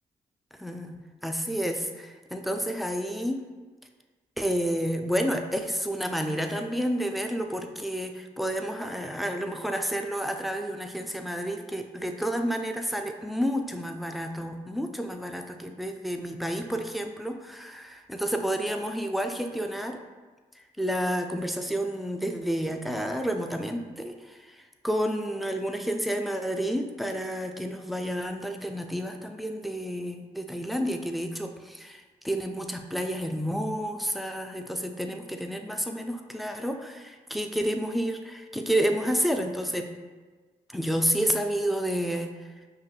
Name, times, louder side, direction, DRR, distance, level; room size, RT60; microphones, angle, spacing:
voice 1, 0.6-1.0 1.2-3.4 4.4-20.0 20.6-39.9 40.7-42.3, equal, ahead, 5 dB, 0.5 m, -30 dB
5.5 x 2.2 x 3.2 m, 1.4 s
supercardioid pair, 45°, 19 cm